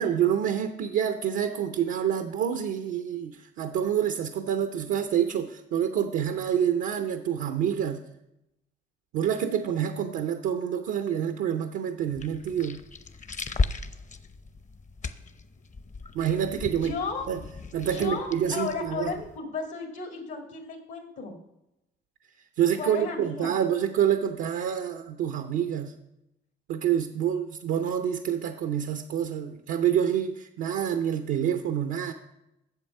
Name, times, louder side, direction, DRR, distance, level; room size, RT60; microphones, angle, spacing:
voice 1, 0.0-8.0 9.1-12.8 16.1-16.9 17.3-17.4 17.7-19.1 22.6-25.9 26.7-32.1, right 9 dB, 85° right, 7 dB, 0.7 m, -27 dB
sound 1, 12.1-19.4, left 4 dB, 35° left, 0.7 m, -36 dB
voice 2, 16.8-17.3 17.9-21.4 22.8-23.6, left 4 dB, 75° left, 1 dB, 1.9 m, -34 dB
8.2 x 7.1 x 5.4 m, 0.87 s
supercardioid pair, 65°, 20 cm